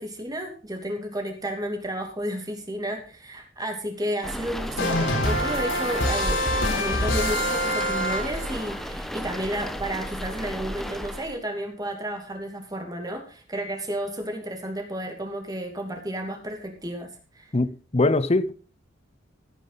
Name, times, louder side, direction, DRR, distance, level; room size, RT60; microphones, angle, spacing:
voice 1, 0.0-17.5, equal, 20° right, 2.7 m, -32 dB
sound 1, 4.2-11.4, equal, ahead, 1.1 m, -33 dB
sound 2, 4.8-8.6, left 1 dB, 70° left, 3.9 m, -25 dB
voice 2, 17.5-18.5, left 2 dB, 30° left, 0.8 m, -22 dB
15.5 x 9.5 x 4.1 m
head